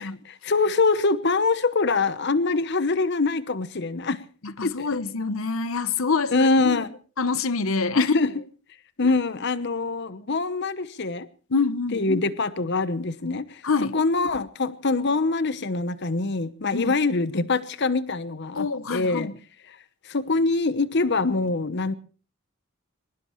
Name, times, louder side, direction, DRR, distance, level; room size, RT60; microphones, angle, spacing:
voice 1, 0.0-4.2 4.6-5.0 6.3-7.0 7.9-8.4 9.0-11.3 11.9-19.3 20.1-21.9, left 3 dB, 55° left, 1.0 m, -24 dB
voice 2, 4.4-6.5 7.2-8.1 11.5-12.0 13.6-14.0 16.7-16.9 18.6-19.3, left 4 dB, 80° left, 0.9 m, -26 dB
23.5 x 20.0 x 3.1 m
head